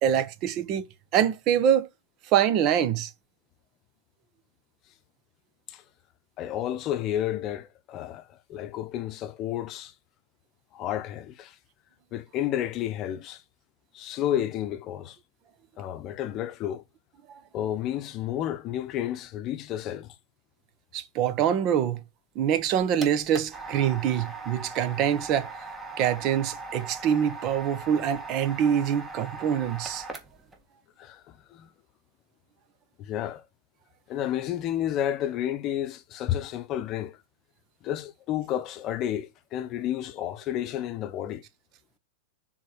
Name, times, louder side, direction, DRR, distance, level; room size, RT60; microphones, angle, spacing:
voice 1, 0.0-0.8 1.1-1.9 2.3-3.1 17.3-17.4 20.9-22.0 22.3-25.5 26.0-30.0, right 9 dB, 40° right, 1.0 m, -25 dB
voice 2, 6.4-9.9 10.7-11.5 12.1-13.4 13.9-15.2 15.8-16.8 17.5-20.1 31.0-31.7 33.0-33.4 34.1-37.2 37.8-41.4, left 11 dB, 40° left, 0.8 m, -31 dB
sound 1, 22.5-30.6, right 3 dB, 15° right, 1.7 m, -40 dB
6.3 x 4.0 x 6.2 m
hypercardioid pair, 115°, 0 cm